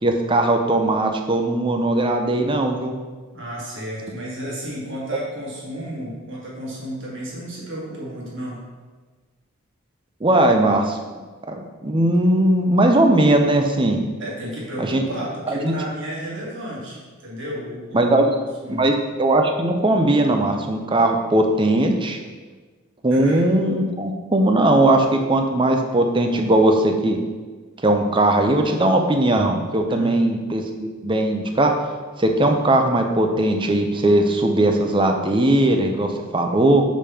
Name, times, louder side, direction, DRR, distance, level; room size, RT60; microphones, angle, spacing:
voice 1, 0.0-2.9 10.2-11.0 11.5-14.0 14.8-15.0 15.5-15.7 17.9-18.4 18.7-22.2 23.0-27.2 27.8-31.8 32.2-36.8, right 1 dB, 20° right, 4 dB, 0.6 m, -19 dB
voice 2, 3.3-8.6 14.2-18.2 18.6-18.9 23.1-23.4 29.9-30.2, equal, 55° right, -5 dB, 2.1 m, -32 dB
5.2 x 5.1 x 5.7 m, 1.4 s
head